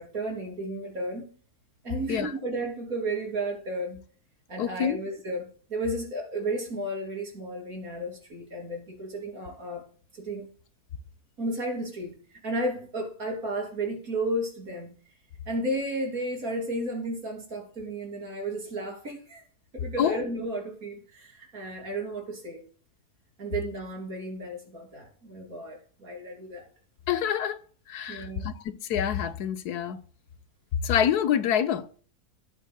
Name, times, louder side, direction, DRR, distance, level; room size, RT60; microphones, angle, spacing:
voice 1, 0.0-1.4 1.8-4.0 4.5-9.8 10.1-10.5 11.4-12.2 12.4-14.9 15.5-19.4 19.7-22.6 23.4-26.6 28.1-28.4, right 1 dB, 65° right, 3.4 m, -33 dB
voice 2, 4.6-5.0 20.0-20.2 27.1-27.6 27.9-30.0 30.8-31.9, left 9 dB, 85° left, 1.3 m, -26 dB
17.0 x 8.3 x 2.2 m
omnidirectional pair, 1.6 m